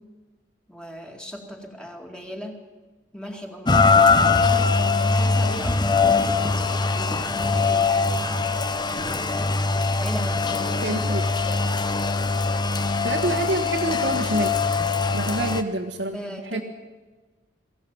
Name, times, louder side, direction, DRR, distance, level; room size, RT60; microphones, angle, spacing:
voice 1, 0.7-2.6 3.1-8.2 9.7-10.9 16.1-16.6, equal, 5° left, 2 dB, 2.4 m, -38 dB
Rain, 3.7-15.6, left 4 dB, 25° left, 0.9 m, -22 dB
voice 2, 10.8-11.2 13.0-14.5 15.1-16.2 16.5-16.6, right 1 dB, 80° right, 0 dB, 1.7 m, -26 dB
22.5 x 15.0 x 9.0 m, 1.3 s
head